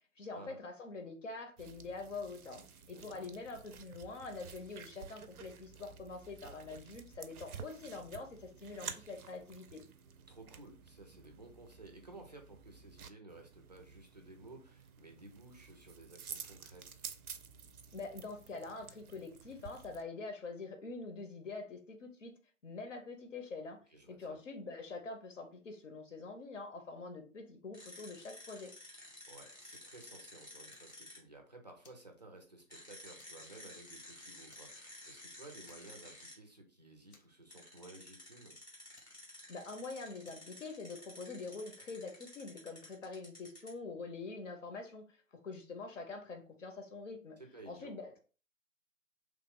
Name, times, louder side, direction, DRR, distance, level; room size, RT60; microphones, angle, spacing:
voice 1, 0.2-9.8 17.9-22.3 22.6-23.8 24.1-28.7 39.5-45.2 45.4-47.4 47.7-48.2, left 3 dB, 60° left, 5 dB, 0.7 m, -45 dB
sound 1, 1.6-20.0, right 7 dB, 85° right, 0.5 m, -52 dB
voice 2, 2.8-3.3 10.3-17.0 23.9-24.4 29.3-38.6 47.4-47.9, right 2 dB, 30° right, 3 dB, 0.4 m, -55 dB
sound 2, 27.7-31.2 32.7-36.3 37.5-43.8, left 1 dB, 15° left, 0.6 m, -53 dB
Fire, 29.7-30.0 30.4-31.4 31.8-32.7 33.2-33.6 33.9-34.0 34.5-35.2 35.6-36.2 36.5-36.6 37.1-37.9 38.9-39.8 40.2-40.6, left 3 dB, 85° left, 1.0 m, -66 dB
3.0 x 2.0 x 3.5 m, 0.37 s
figure-of-eight pair, 145°, 43 cm